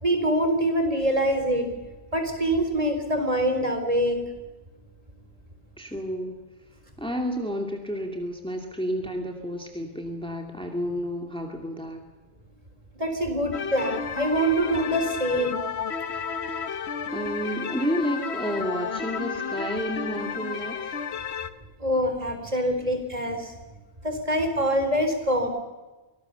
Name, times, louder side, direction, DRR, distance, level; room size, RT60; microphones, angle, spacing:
voice 1, 0.0-1.7 2.1-4.2 12.9-15.6 21.8-23.5 24.0-25.5, right 1 dB, 30° right, 6 dB, 4.1 m, -24 dB
voice 2, 5.8-6.4 7.0-12.0 17.1-21.0, equal, 5° left, 2 dB, 2.4 m, -31 dB
sound 1, 13.5-21.5, left 6 dB, 70° left, 1.4 m, -32 dB
24.5 x 19.5 x 6.9 m, 1.2 s
omnidirectional pair, 1.2 m